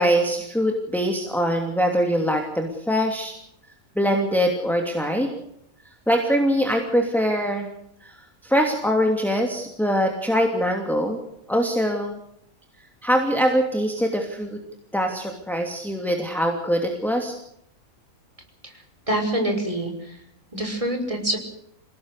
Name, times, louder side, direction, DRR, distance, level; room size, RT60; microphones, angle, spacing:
voice 1, 0.0-3.3 4.0-5.3 6.1-7.7 8.0-8.2 8.4-11.2 11.5-12.2 13.0-14.6 14.9-17.3, equal, ahead, 2 dB, 2.8 m, -23 dB
voice 2, 18.6-20.2 20.5-21.4, right 1 dB, 20° right, 3 dB, 5.9 m, -26 dB
28.0 x 18.0 x 6.8 m, 0.75 s
omnidirectional pair, 1.5 m